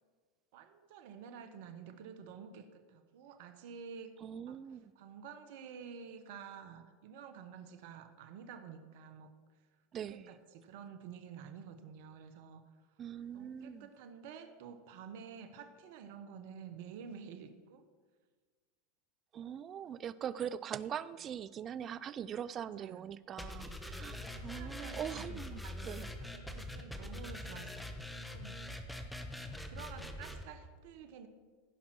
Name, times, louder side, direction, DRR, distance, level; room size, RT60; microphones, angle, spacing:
voice 1, 0.5-4.1 4.4-4.6 4.9-9.3 10.1-12.6 13.3-17.9 22.5-23.1 23.5-23.9 24.2-31.3, right 7 dB, 65° right, 8 dB, 1.1 m, -50 dB
voice 2, 4.2-4.9 9.9-10.3 13.0-13.9 19.3-26.1, right 9 dB, 35° right, 18 dB, 0.4 m, -42 dB
sound 1, 23.4-30.4, left 1 dB, 5° left, 1.2 m, -44 dB
15.5 x 5.7 x 6.2 m, 1.5 s
hypercardioid pair, 100°, 0 cm